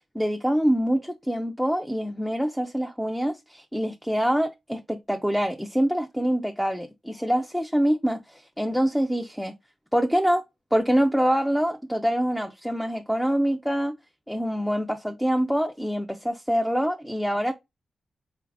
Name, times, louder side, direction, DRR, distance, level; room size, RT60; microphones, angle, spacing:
voice 1, 0.1-9.5 9.9-10.4 10.7-14.0 14.3-17.5, equal, ahead, 0.3 m, -25 dB
4.0 x 2.5 x 3.2 m
wide cardioid pair, 120°, 0 cm